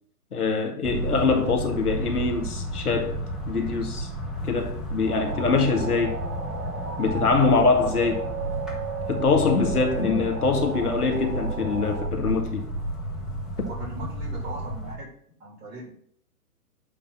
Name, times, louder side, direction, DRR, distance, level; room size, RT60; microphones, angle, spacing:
voice 1, 0.3-3.2 3.5-4.1 4.4-6.2 7.0-8.3 9.1-12.6, left 4 dB, 70° left, 1.8 m, -24 dB
sound 1, 0.8-14.9, equal, ahead, 0.9 m, -32 dB
sound 2, 5.1-12.1, right 5 dB, 75° right, 1.3 m, -35 dB
voice 2, 13.8-15.1 15.4-15.9, right 2 dB, 40° right, 3.5 m, -38 dB
8.6 x 3.4 x 5.8 m
figure-of-eight pair, 120°, 47 cm